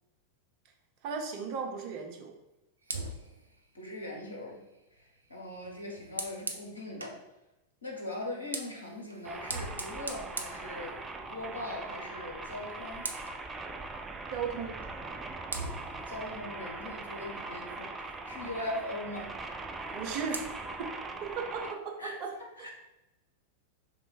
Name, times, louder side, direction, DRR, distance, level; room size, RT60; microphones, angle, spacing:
voice 1, 1.0-2.3 14.3-14.7 19.9-20.7 21.4-21.6, right 5 dB, 40° right, 1 dB, 0.8 m, -35 dB
Fire, 2.8-7.3 8.2-11.4 11.8-12.0 12.4-13.5 14.8-15.0 15.5-17.8 19.7-20.5, right 2 dB, 75° right, 0.5 m, -43 dB
voice 2, 3.7-4.6 4.9-7.2 7.8-11.0 11.3-13.1 16.0-19.4 22.0-22.2 22.6-22.7, left 1 dB, 75° left, -2 dB, 1.0 m, -40 dB
sound 1, 9.2-21.7, right 3 dB, 15° right, 0.4 m, -41 dB
3.2 x 3.0 x 4.3 m, 0.95 s
figure-of-eight pair, 90°, 0 cm